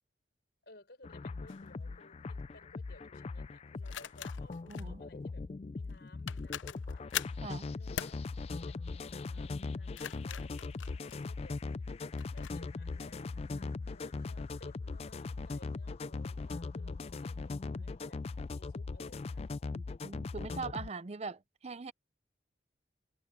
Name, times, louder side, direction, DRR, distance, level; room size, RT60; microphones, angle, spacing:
voice 1, 0.6-5.4 5.7-7.1 7.6-8.1 8.4-11.9 12.3-18.2 18.5-19.5, left 2 dB, 60° left, 5.9 m, -59 dB
sound 1, 1.0-20.9, left 3 dB, 35° left, 0.3 m, -40 dB
sound 2, 1.5-1.7 3.8-4.9 5.9-6.0 6.3-7.4 7.9-8.2 9.7-11.6 12.2-12.6, left 10 dB, 90° left, 0.5 m, -41 dB
voice 2, 4.7-5.0 7.4-7.7 19.7-21.9, right 4 dB, 35° right, 0.5 m, -42 dB
head